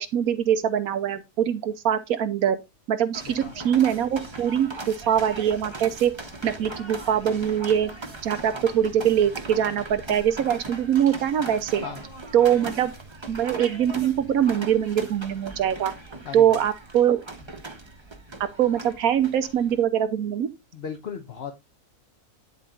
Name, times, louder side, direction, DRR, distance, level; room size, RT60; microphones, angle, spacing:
voice 1, 0.0-2.6 2.9-6.2 6.4-7.9 8.2-11.9 12.3-12.9 13.3-15.9 16.3-17.2 18.6-20.5, right 9 dB, 70° right, 1.2 m, -23 dB
sound 1, 3.1-19.8, right 2 dB, 20° right, 0.9 m, -39 dB
voice 2, 3.2-3.6 11.8-12.0 16.2-16.6 20.7-21.5, left 7 dB, 50° left, 1.0 m, -36 dB
10.0 x 4.3 x 3.7 m
omnidirectional pair, 1.6 m